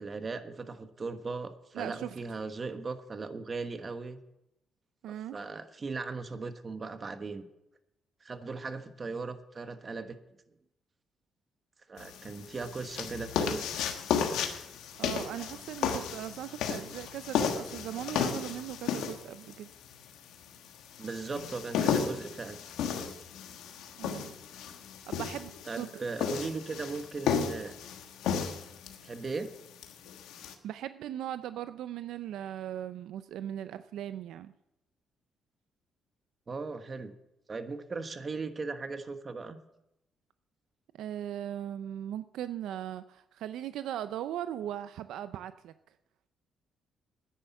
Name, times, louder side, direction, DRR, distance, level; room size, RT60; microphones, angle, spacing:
voice 1, 0.0-4.2 5.1-7.5 8.2-10.2 11.9-13.7 21.0-22.6 25.7-27.7 29.0-29.5 36.5-37.1 37.5-39.6, right 4 dB, 35° right, 9 dB, 1.2 m, -38 dB
voice 2, 1.7-2.1 5.0-5.4 15.0-19.7 24.0-24.3 25.1-26.0 30.6-34.5 40.9-45.7, right 11 dB, 80° right, 12 dB, 0.4 m, -39 dB
sound 1, 12.0-30.5, left 7 dB, 90° left, 1.3 m, -34 dB
10.0 x 10.0 x 7.1 m, 0.87 s
cardioid pair, 90°, 0 cm